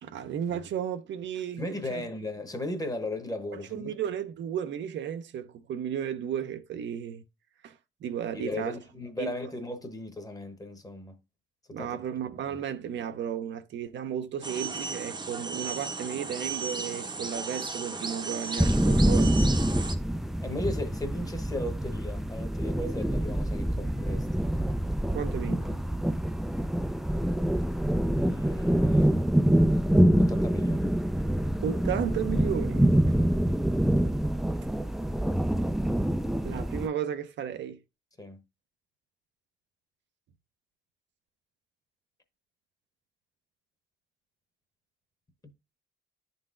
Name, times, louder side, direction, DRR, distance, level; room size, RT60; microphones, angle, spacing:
voice 1, 0.0-2.0 3.5-7.2 7.6-8.8 9.2-9.3 11.7-19.3 25.1-25.8 31.6-32.9 36.4-37.8, right 9 dB, 65° right, 0.6 m, -34 dB
voice 2, 1.6-3.9 8.3-11.2 11.7-12.0 20.4-24.5 27.7-27.8 28.1-29.1 30.2-30.9 33.1-33.3 38.2-38.4, left 1 dB, 20° left, 1.0 m, -36 dB
sound 1, 14.4-19.9, right 4 dB, 20° right, 0.7 m, -35 dB
sound 2, 18.6-36.9, right 1 dB, ahead, 0.3 m, -26 dB
10.5 x 3.9 x 2.4 m
cardioid pair, 90°, 20 cm